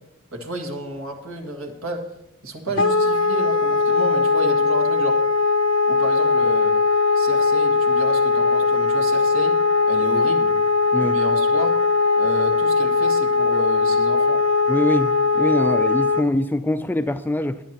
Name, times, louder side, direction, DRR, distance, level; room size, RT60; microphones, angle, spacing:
voice 1, 0.3-2.1 2.4-5.2 5.9-6.7 7.2-9.6 9.9-10.6 11.0-11.7 12.2-14.4, right 1 dB, 75° right, 2 dB, 2.0 m, -31 dB
Wind instrument woodwind instrument, 2.8-16.3, left 3 dB, 65° left, 0.6 m, -19 dB
voice 2, 14.7-17.6, left 1 dB, 10° left, 11 dB, 0.3 m, -23 dB
20.0 x 9.4 x 3.0 m, 0.87 s
head